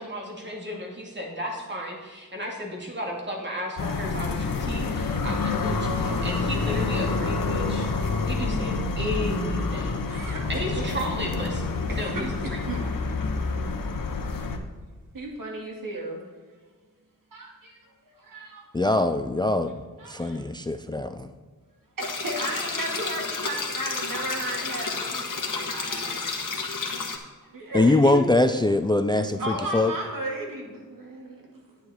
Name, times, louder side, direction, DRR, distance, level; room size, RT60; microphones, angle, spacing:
voice 1, 0.0-7.9 8.2-10.1 10.5-11.6 12.0-12.6, equal, 35° right, -1 dB, 2.4 m, -34 dB
sound 1, 3.8-14.6, left 3 dB, 90° left, 1.0 m, -28 dB
voice 2, 10.1-10.4 10.8-10.9 11.9-12.9 15.1-16.2 17.3-17.8 18.3-18.6 20.0-20.4 22.0-25.2 25.5-26.2 27.5-28.2 29.2-31.5, right 2 dB, 80° right, -1 dB, 2.4 m, -34 dB
voice 3, 18.7-21.3 27.7-29.9, left 2 dB, 15° left, 9 dB, 0.4 m, -23 dB
sound 2, 22.0-27.2, left 4 dB, 75° left, 1.5 m, -31 dB
9.6 x 9.5 x 4.3 m, 1.4 s
wide cardioid pair, 105°, 33 cm